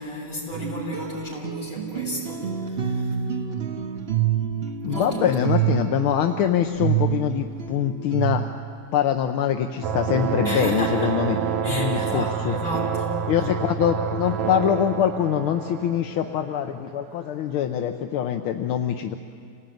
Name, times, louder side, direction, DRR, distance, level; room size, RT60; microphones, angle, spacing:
voice 1, 0.0-3.1 4.9-5.4 10.4-11.1 11.6-13.3, equal, 40° left, -5 dB, 7.8 m, -33 dB
sound 1, 0.5-8.8, right 9 dB, 85° right, 0.5 m, -27 dB
voice 2, 4.8-8.5 8.9-11.4 11.7-12.5 13.3-19.2, left 9 dB, 80° left, 5 dB, 1.7 m, -24 dB
sound 2, 9.8-17.0, right 7 dB, 70° right, 1.6 m, -28 dB
27.5 x 18.5 x 9.3 m, 2.3 s
omnidirectional pair, 2.4 m